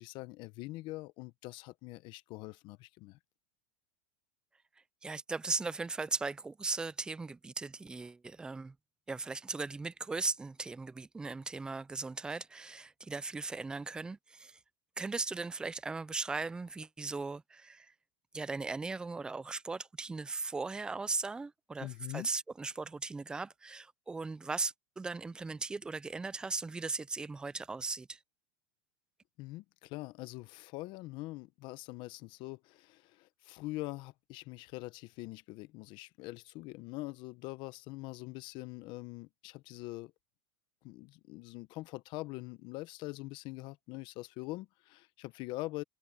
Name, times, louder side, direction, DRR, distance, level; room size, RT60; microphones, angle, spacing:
voice 1, 0.0-3.2 21.8-22.3 29.4-40.1 40.8-45.8, left 20 dB, 45° left, 0.8 m, -43 dB
voice 2, 5.0-8.8 9.1-14.6 15.0-17.9 18.3-28.2, right 3 dB, 5° right, 0.3 m, -38 dB
supercardioid pair, 140°, 11 cm